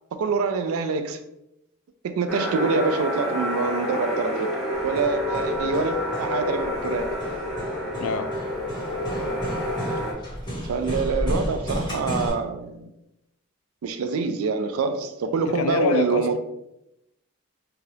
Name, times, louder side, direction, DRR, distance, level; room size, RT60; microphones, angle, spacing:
voice 1, 0.1-1.2 2.0-4.6 4.8-7.1 10.7-12.9 13.8-16.4, right 4 dB, 80° right, 0.3 m, -25 dB
sound 1, 2.3-10.1, left 1 dB, 5° left, 0.5 m, -28 dB
Hammer, 4.7-12.3, equal, 20° left, 1.5 m, -33 dB
voice 2, 8.0-8.3 15.5-16.4, left 5 dB, 85° left, 0.3 m, -25 dB
2.7 x 2.4 x 3.2 m
head